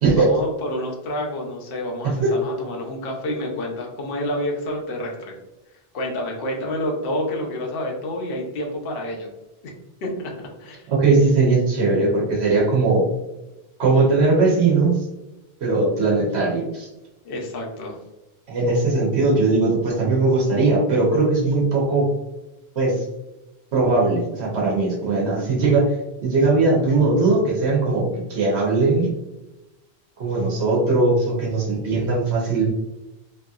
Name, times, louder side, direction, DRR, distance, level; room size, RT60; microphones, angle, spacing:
voice 1, 0.2-5.3 5.9-9.3 9.6-9.7 10.0-10.9 17.2-18.0, left 1 dB, 65° left, 0 dB, 0.9 m, -29 dB
voice 2, 10.9-13.1 13.8-15.0 15.6-16.9 18.5-22.1 22.8-23.0 23.7-25.9 26.2-29.1 30.2-32.7, right 3 dB, 80° right, -3 dB, 1.1 m, -19 dB
3.1 x 2.7 x 2.3 m, 0.98 s
omnidirectional pair, 1.1 m